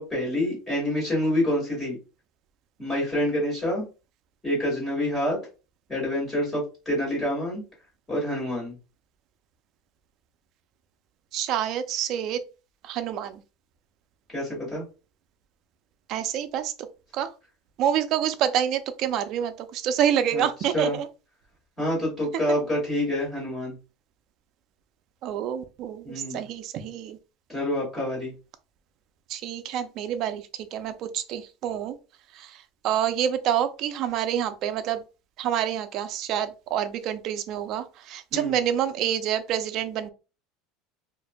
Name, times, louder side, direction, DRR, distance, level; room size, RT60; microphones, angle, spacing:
voice 1, 0.0-2.0 2.8-3.8 4.4-5.4 5.9-7.6 8.1-8.8 14.3-14.8 20.3-21.0 21.8-23.7 26.0-26.4 27.5-28.3 38.3-38.5, left 1 dB, 10° left, 2.0 m, -27 dB
voice 2, 11.3-12.4 12.8-13.4 16.1-16.7 17.1-17.3 17.8-21.1 22.3-22.4 25.2-27.2 29.3-32.0 32.3-35.0 35.4-40.1, right 9 dB, 40° right, 0.4 m, -27 dB
4.5 x 2.5 x 2.2 m
cardioid pair, 170°, 0 cm